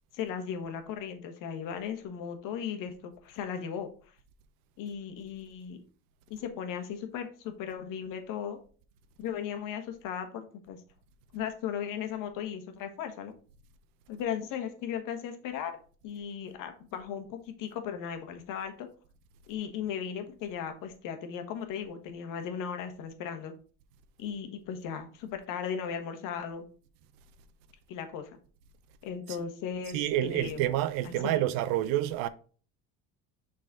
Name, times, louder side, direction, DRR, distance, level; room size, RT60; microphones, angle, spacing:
voice 1, 0.1-4.1 4.8-5.8 6.3-8.6 9.2-10.8 11.3-13.3 14.1-15.8 16.0-18.9 19.5-23.5 24.2-26.6 27.9-28.4 29.0-30.6 31.0-31.4, left 8 dB, 65° left, 1.5 m, -37 dB
voice 2, 29.9-32.3, right 13 dB, 75° right, 0.7 m, -28 dB
6.4 x 4.1 x 4.1 m
cardioid pair, 115°, 34 cm